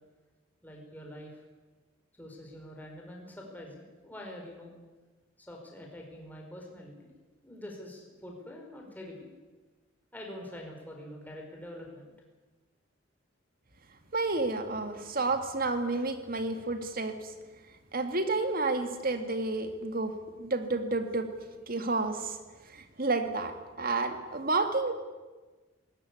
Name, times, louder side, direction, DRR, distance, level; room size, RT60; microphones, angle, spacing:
voice 1, 0.6-1.4 2.2-4.7 5.4-7.1 7.4-9.3 10.1-12.1, left 1 dB, 10° left, 0 dB, 4.8 m, -45 dB
voice 2, 14.1-17.3 17.9-21.3 21.7-22.4 22.7-24.9, right 3 dB, 50° right, 7 dB, 2.1 m, -30 dB
19.5 x 18.0 x 9.8 m, 1.3 s
head